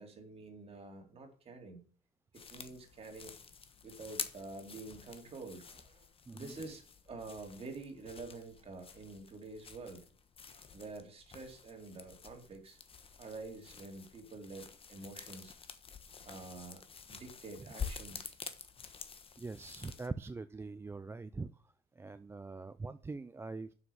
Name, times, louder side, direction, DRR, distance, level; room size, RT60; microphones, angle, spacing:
voice 1, 0.0-1.8 2.3-3.3 3.8-10.0 10.7-12.8 13.2-15.5 16.2-16.8 17.1-18.4, right 3 dB, 35° right, 3 dB, 2.9 m, -48 dB
sound 1, 2.3-20.1, left 6 dB, 35° left, 1.2 m, -48 dB
voice 2, 19.4-23.7, right 3 dB, 15° right, 12 dB, 0.4 m, -43 dB
7.2 x 6.4 x 7.0 m, 0.42 s
cardioid pair, 110°, 17 cm